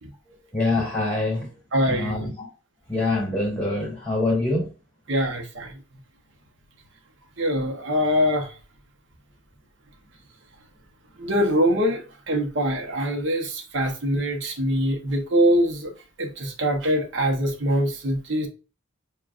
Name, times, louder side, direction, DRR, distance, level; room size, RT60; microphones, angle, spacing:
voice 1, 0.5-1.5 1.9-2.5 2.9-4.7, left 2 dB, 5° left, 2.2 m, -25 dB
voice 2, 1.7-2.3 5.1-5.7 7.4-8.5 11.2-15.9 16.2-18.5, equal, 60° right, 0.9 m, -23 dB
7.1 x 2.4 x 2.4 m
head